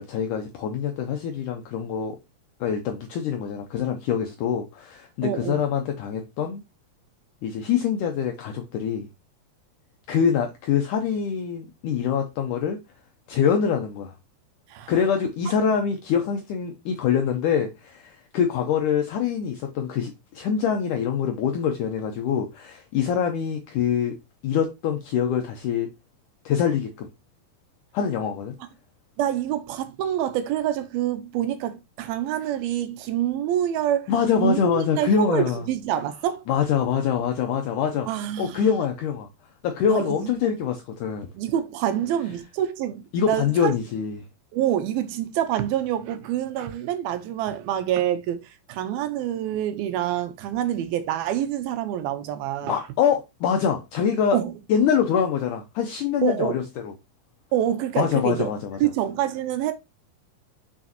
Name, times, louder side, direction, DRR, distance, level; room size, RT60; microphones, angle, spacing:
voice 1, 0.0-2.2 2.6-6.6 7.4-9.1 10.1-12.8 13.3-14.1 14.9-24.2 24.4-25.9 26.5-27.1 27.9-28.6 34.1-35.6 36.5-38.1 38.4-39.3 39.6-41.3 43.1-44.2 52.6-54.4 54.7-56.6 58.0-58.8, left 7 dB, 75° left, 2.1 m, -24 dB
voice 2, 5.2-5.6 14.7-14.9 29.2-34.1 34.4-36.4 38.1-38.7 39.9-40.3 41.3-43.7 44.5-52.8 54.3-54.5 56.2-56.6 57.5-58.5 58.8-59.7, right 11 dB, 90° right, 2.7 m, -26 dB
6.2 x 6.0 x 2.9 m
omnidirectional pair, 4.3 m